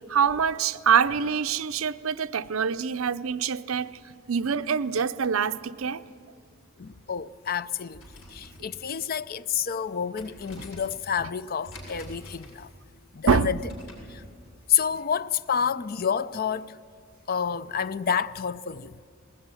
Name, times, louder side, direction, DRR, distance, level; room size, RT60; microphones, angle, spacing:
voice 1, 0.1-4.0 4.3-6.0 13.3-13.5, right 6 dB, 80° right, 0.6 m, -25 dB
voice 2, 6.8-8.0 8.3-12.7 13.1-13.6 14.1-14.2 14.7-16.8 17.3-18.9, left 7 dB, 45° left, 0.5 m, -29 dB
sound 1, 7.9-14.2, equal, 80° left, 7.0 m, -48 dB
20.0 x 19.0 x 9.8 m
head